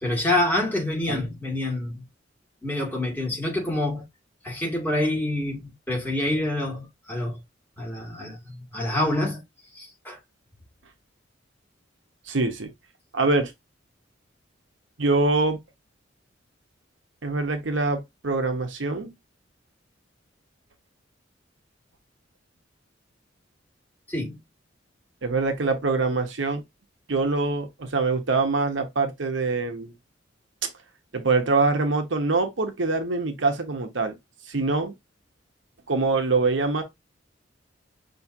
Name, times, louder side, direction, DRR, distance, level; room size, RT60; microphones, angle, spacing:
voice 1, 0.0-2.0 2.6-4.1 4.4-7.4 7.8-9.4 9.7-10.2 24.1-24.4, left 1 dB, 10° left, 2.5 m, -27 dB
voice 2, 12.3-12.7 13.1-13.5 15.0-15.6 17.2-19.1 25.2-26.6 27.1-29.9 31.1-34.2 34.4-34.9 35.9-36.8, right 3 dB, 75° right, 1.0 m, -24 dB
5.9 x 3.0 x 2.7 m
head